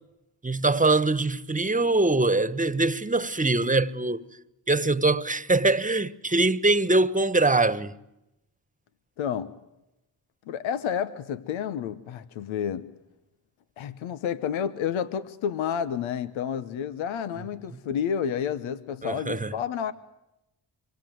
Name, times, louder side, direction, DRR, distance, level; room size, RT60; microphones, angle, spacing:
voice 1, 0.4-4.2 4.7-7.9 19.0-19.5, right 2 dB, 15° right, 1.4 m, -23 dB
voice 2, 9.2-9.5 10.5-12.9 13.8-19.9, left 8 dB, 90° left, 1.1 m, -30 dB
26.0 x 23.5 x 9.3 m
supercardioid pair, 55°, 45 cm